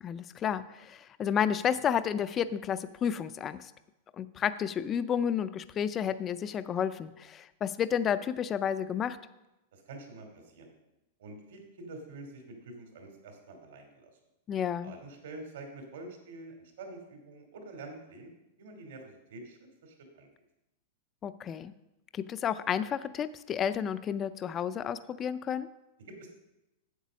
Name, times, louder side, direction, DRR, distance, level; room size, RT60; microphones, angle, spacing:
voice 1, 0.0-3.7 4.2-9.2 14.5-14.9 21.2-21.7 22.1-25.7, left 8 dB, 20° left, 13 dB, 0.4 m, -31 dB
voice 2, 9.7-10.7 11.2-14.1 14.8-18.3 18.6-20.3 26.1-26.3, right 2 dB, 75° right, 3 dB, 2.7 m, -47 dB
8.2 x 7.8 x 6.2 m, 0.95 s
supercardioid pair, 160°, 0 cm